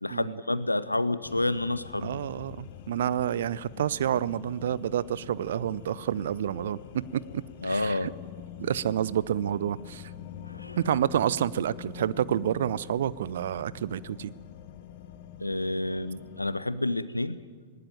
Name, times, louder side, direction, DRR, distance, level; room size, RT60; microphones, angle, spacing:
voice 1, 0.0-2.2 7.6-8.1 10.4-10.8 15.4-17.4, left 2 dB, 85° left, 16 dB, 0.8 m, -29 dB
sound 1, 1.2-16.6, left 10 dB, 50° left, 1.3 m, -45 dB
voice 2, 2.0-8.1 8.6-10.1 10.8-14.3, right 10 dB, 60° right, 21 dB, 0.6 m, -29 dB
19.0 x 18.0 x 9.2 m, 1.5 s
figure-of-eight pair, 90°, 0 cm